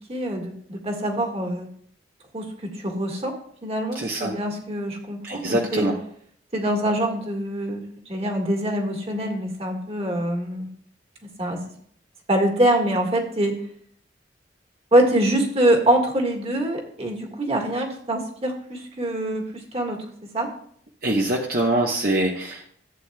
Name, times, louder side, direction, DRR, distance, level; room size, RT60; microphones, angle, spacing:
voice 1, 0.1-1.7 2.3-3.3 3.6-5.9 6.5-10.7 11.4-11.6 12.3-13.6 14.9-20.0 20.3-20.5, right 1 dB, 35° right, 2 dB, 1.7 m, -24 dB
voice 2, 3.9-4.3 5.2-5.9 21.0-22.7, right 1 dB, 55° right, 0 dB, 1.0 m, -24 dB
15.0 x 8.2 x 2.3 m, 0.63 s
head